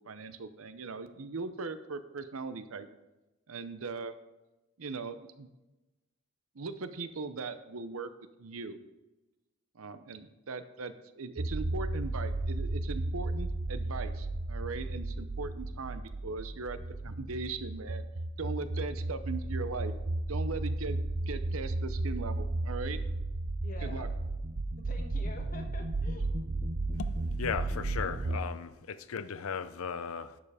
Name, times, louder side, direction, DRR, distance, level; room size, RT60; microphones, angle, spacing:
voice 1, 0.0-2.9 3.5-4.1 4.8-5.5 6.5-8.1 8.4-8.8 9.7-18.0 18.4-19.9 20.3-21.0 21.3-23.0 23.8-24.1, right 4 dB, 85° right, 11 dB, 0.7 m, -39 dB
sound 1, 11.4-28.4, right 2 dB, 50° right, 0.6 m, -34 dB
voice 2, 23.6-24.1 24.8-26.3, left 2 dB, 40° left, 2 dB, 1.3 m, -47 dB
voice 3, 27.4-30.4, left 6 dB, 90° left, 13 dB, 0.5 m, -36 dB
11.0 x 5.5 x 5.0 m, 1.0 s
head